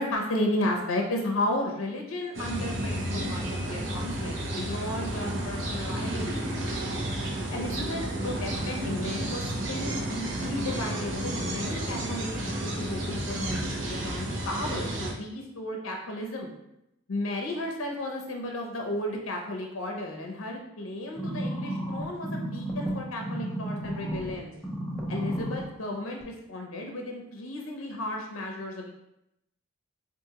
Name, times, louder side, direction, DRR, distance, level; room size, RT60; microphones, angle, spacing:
voice 1, 0.0-6.5 7.5-16.5 17.1-24.5 25.1-28.9, left 1 dB, 85° left, 1 dB, 0.6 m, -33 dB
sound 1, 2.3-15.1, right 1 dB, 65° right, 0.7 m, -32 dB
sound 2, 21.2-24.3 24.6-25.6 26.2-26.3, right 1 dB, ahead, 0.5 m, -32 dB
4.7 x 2.5 x 2.8 m, 0.85 s
head